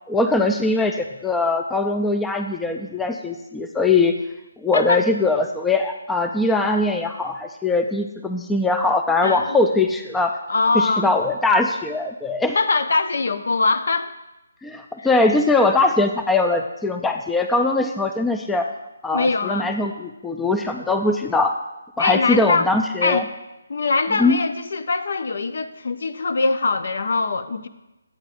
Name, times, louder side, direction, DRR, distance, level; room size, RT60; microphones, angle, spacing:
voice 1, 0.1-4.1 4.6-10.4 10.7-12.6 14.6-18.7 19.0-21.5 22.0-23.2 24.1-24.4, left 2 dB, 5° left, 4 dB, 0.3 m, -21 dB
voice 2, 4.7-5.0 9.2-9.6 10.5-11.1 12.5-14.1 15.0-15.1 19.1-19.7 22.0-22.7 23.0-23.3 23.7-27.7, left 3 dB, 65° left, 9 dB, 0.6 m, -22 dB
11.5 x 8.7 x 2.5 m, 0.96 s
hypercardioid pair, 160°, 0 cm